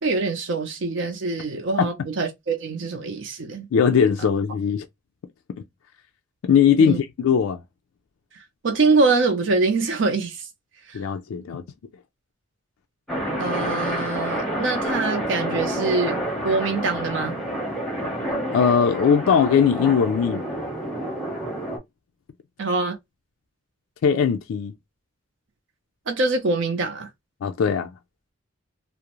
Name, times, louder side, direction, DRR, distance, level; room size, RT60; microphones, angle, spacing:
voice 1, 0.0-3.7 6.8-7.0 8.6-10.5 10.9-11.0 13.4-17.4 22.6-23.0 26.1-27.1, right 3 dB, 65° right, 0.5 m, -24 dB
voice 2, 3.7-4.8 6.4-7.6 10.9-11.6 18.5-20.4 24.0-24.7 27.4-27.9, left 7 dB, 85° left, 0.3 m, -19 dB
sound 1, 13.1-21.8, right 1 dB, ahead, 0.7 m, -28 dB
2.4 x 2.0 x 2.9 m
head